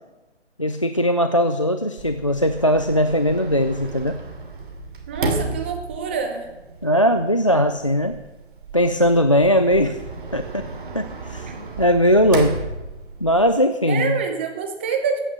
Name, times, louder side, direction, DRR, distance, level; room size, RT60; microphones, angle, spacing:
voice 1, 0.6-4.2 6.8-8.2 8.7-10.0 10.3-10.7 10.9-11.5 11.8-12.7 13.2-14.2, equal, 30° left, 8 dB, 0.4 m, -19 dB
Sliding door, 2.0-13.5, right 3 dB, 45° right, 2.6 m, -33 dB
voice 2, 5.1-6.5 13.9-15.2, right 5 dB, 10° right, 5 dB, 0.7 m, -26 dB
14.5 x 9.1 x 7.3 m, 1.1 s
hypercardioid pair, 160°, 36 cm